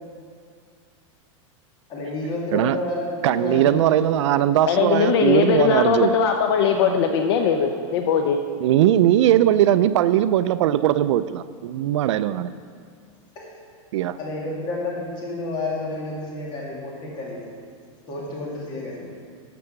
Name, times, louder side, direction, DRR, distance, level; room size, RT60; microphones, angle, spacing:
voice 1, 1.9-4.3 13.4-13.5 14.2-17.4 18.1-19.0, left 2 dB, 25° left, -3 dB, 2.5 m, -30 dB
voice 2, 3.2-6.1 6.8-6.9 8.6-12.5 13.9-14.2, right 12 dB, 60° right, 14 dB, 0.4 m, -19 dB
voice 3, 4.7-8.4, left 7 dB, 50° left, 5 dB, 0.7 m, -20 dB
13.0 x 6.8 x 5.9 m, 2.2 s
supercardioid pair, 165°, 17 cm